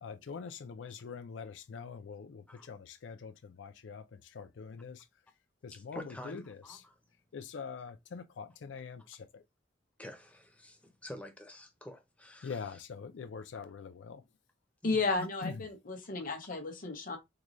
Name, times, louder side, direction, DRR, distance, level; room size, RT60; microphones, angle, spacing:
voice 1, 0.0-5.1 5.6-6.8 7.3-9.4 12.4-14.2 15.2-15.7, left 5 dB, 70° left, 0.4 m, -44 dB
voice 2, 5.7-6.9 10.0-12.6 14.8-15.1, left 1 dB, 5° left, 0.6 m, -48 dB
voice 3, 14.8-17.2, left 3 dB, 45° left, 0.9 m, -33 dB
3.8 x 2.3 x 3.0 m
head